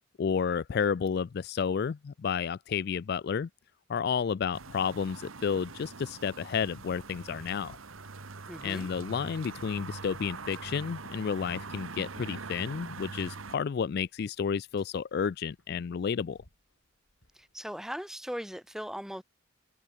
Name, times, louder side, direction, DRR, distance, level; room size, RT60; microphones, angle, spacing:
voice 1, 0.2-3.5 3.9-7.8 8.6-16.4, left 6 dB, 50° left, 0.3 m, -31 dB
sound 1, 4.5-13.6, right 4 dB, 80° right, 1.4 m, -43 dB
voice 2, 8.5-8.9 17.3-19.2, equal, ahead, 2.2 m, -39 dB
Run, 12.0-17.9, left 1 dB, 75° left, 6.3 m, -66 dB
head